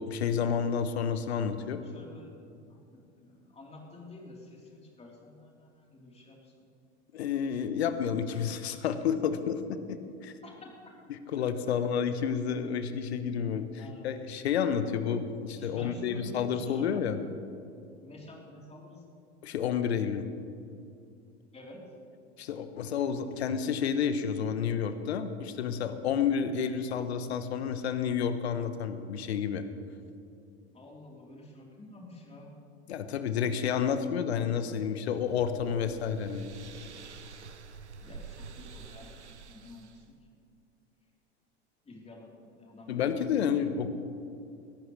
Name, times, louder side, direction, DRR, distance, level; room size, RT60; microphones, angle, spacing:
voice 1, 0.0-1.8 7.1-9.6 9.9-10.0 10.2-10.3 11.1-13.7 14.0-17.2 19.4-20.3 22.4-29.6 32.9-36.5 42.9-43.9, left 7 dB, 70° left, 10 dB, 1.0 m, -30 dB
voice 2, 1.8-6.7 10.4-10.7 13.8-14.1 15.6-17.2 18.0-19.0 21.5-21.8 30.7-32.5 38.0-40.1 41.8-43.2, left 2 dB, 20° left, -2 dB, 3.8 m, -49 dB
sound 1, 34.7-40.1, right 5 dB, 85° right, 0.8 m, -48 dB
22.0 x 14.0 x 3.3 m, 2.5 s
figure-of-eight pair, 80°, 34 cm